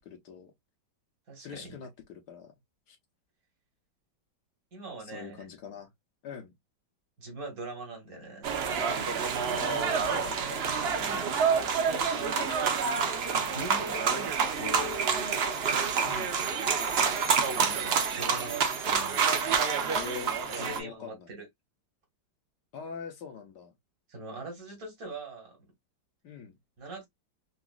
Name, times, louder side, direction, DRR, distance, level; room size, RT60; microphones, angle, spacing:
voice 1, 0.0-0.5 1.4-2.5 2.9-3.0 5.0-5.9 6.2-6.5 9.6-10.7 12.1-12.9 16.0-16.4 19.9-21.3 22.7-23.7 26.2-26.5, left 7 dB, 70° left, 1.4 m, -43 dB
voice 2, 1.3-1.8 4.7-5.5 7.2-8.6 10.8-11.3 13.3-15.3 17.3-19.2 20.6-21.5 24.1-25.6 26.8-27.1, right 1 dB, 55° right, 1.8 m, -42 dB
sound 1, 8.4-20.8, right 6 dB, 75° right, 0.5 m, -28 dB
4.0 x 2.4 x 2.3 m
omnidirectional pair, 1.9 m